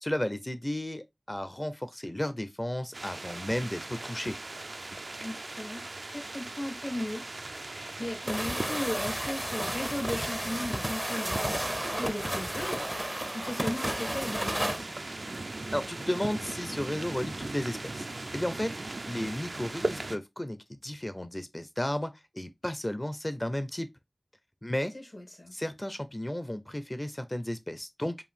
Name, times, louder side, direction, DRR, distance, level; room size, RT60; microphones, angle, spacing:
voice 1, 0.0-4.4 15.7-18.1 18.3-18.7 19.1-23.9 24.6-24.9 25.5-28.2, left 1 dB, 25° left, 0.7 m, -33 dB
sound 1, 2.9-20.2, right 2 dB, 75° right, 0.4 m, -39 dB
voice 2, 5.2-5.8 6.1-7.2 7.6-14.9 24.9-25.5, left 1 dB, 65° left, 1.9 m, -37 dB
sound 2, 8.3-14.8, right 1 dB, 15° right, 0.5 m, -33 dB
4.7 x 2.7 x 3.4 m
wide cardioid pair, 50°, 0 cm